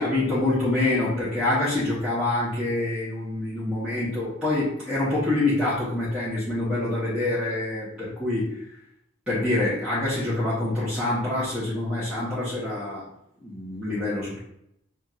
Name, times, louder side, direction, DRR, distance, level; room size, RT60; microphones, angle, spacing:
voice 1, 0.0-8.6 9.3-13.1 13.4-14.4, left 2 dB, 5° right, -13 dB, 1.4 m, -26 dB
6.8 x 2.8 x 2.6 m, 0.76 s
head